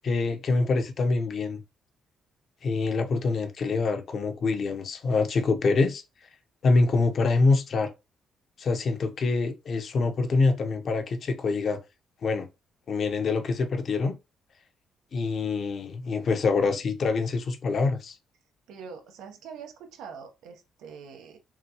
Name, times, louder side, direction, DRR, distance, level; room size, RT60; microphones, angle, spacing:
voice 1, 0.0-1.6 2.6-6.0 6.6-7.9 8.6-11.8 12.2-12.5 12.9-14.2 15.1-18.1, left 3 dB, 55° left, 0.9 m, -25 dB
voice 2, 18.7-21.4, right 6 dB, 90° right, 0.9 m, -44 dB
5.8 x 2.2 x 3.0 m
cardioid pair, 90°, 0 cm